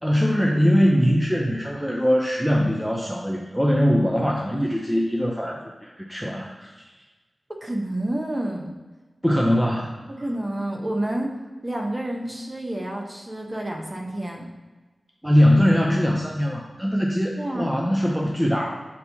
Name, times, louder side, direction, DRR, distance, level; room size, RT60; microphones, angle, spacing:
voice 1, 0.0-6.7 9.2-10.0 15.2-18.9, equal, 5° right, -1 dB, 0.5 m, -21 dB
voice 2, 7.6-8.7 10.1-11.3 11.6-14.5 17.4-17.7, right 1 dB, 25° right, 0 dB, 0.9 m, -29 dB
8.1 x 4.5 x 2.7 m, 1.2 s
wide cardioid pair, 100°, 0 cm